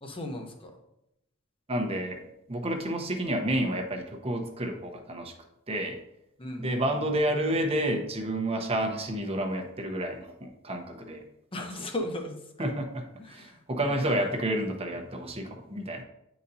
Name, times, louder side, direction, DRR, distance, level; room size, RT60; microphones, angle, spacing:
voice 1, 0.0-0.7 6.4-6.8 11.5-12.4 13.2-13.5 13.8-14.1, left 1 dB, 25° left, 3 dB, 0.9 m, -36 dB
voice 2, 1.7-5.3 5.7-6.0 6.6-11.2 11.8-11.9 12.6-16.0, right 1 dB, 30° right, 2 dB, 0.9 m, -30 dB
9.0 x 4.0 x 2.8 m, 0.85 s
head